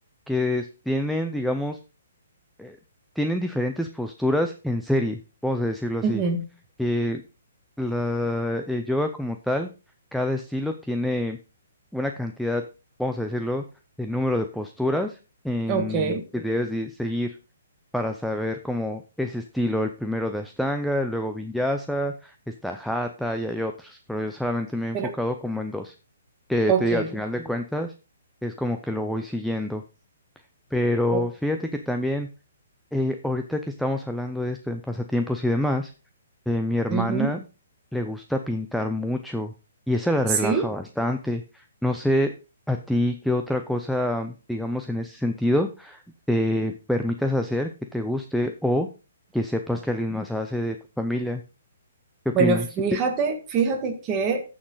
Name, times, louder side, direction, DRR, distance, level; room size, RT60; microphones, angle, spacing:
voice 1, 0.3-1.8 2.6-2.8 3.2-6.2 6.8-7.2 7.8-9.7 10.1-11.4 11.9-12.6 13.0-13.6 14.0-15.2 15.4-17.3 17.9-22.3 22.6-25.9 26.5-27.9 28.4-29.8 30.7-32.3 32.9-35.9 36.5-37.4 37.9-39.5 39.9-42.3 42.7-46.0 46.3-48.9 49.3-51.4 52.3-52.7, left 1 dB, ahead, 5 dB, 0.5 m, -26 dB
voice 2, 6.0-6.4 15.7-16.2 24.9-25.1 26.7-27.1 31.1-31.2 36.9-37.3 40.4-40.6 52.3-54.4, right 5 dB, 20° right, 3 dB, 1.8 m, -24 dB
14.0 x 6.2 x 3.9 m, 0.32 s
hypercardioid pair, 170°, 0 cm